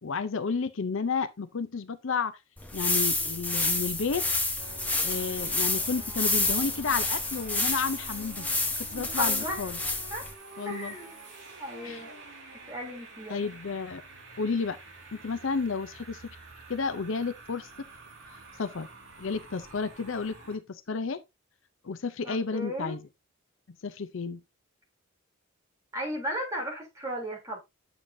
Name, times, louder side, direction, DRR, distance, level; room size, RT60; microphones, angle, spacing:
voice 1, 0.0-2.4 2.7-4.2 5.0-9.8 10.6-10.9 11.8-12.0 13.3-14.0 14.4-14.8 15.2-16.2 16.7-17.7 18.3-18.9 19.2-21.2 21.8-23.0 23.8-24.4, left 5 dB, 60° left, 0.6 m, -32 dB
sound 1, 2.6-10.3, left 2 dB, 5° left, 1.0 m, -29 dB
sound 2, 4.6-20.6, right 3 dB, 55° right, 4.8 m, -48 dB
voice 2, 8.9-9.6 10.1-10.3 10.6-11.1 11.6-12.1 12.7-13.5 22.2-23.0 25.9-27.6, equal, 15° right, 3.1 m, -35 dB
8.8 x 6.9 x 2.6 m
head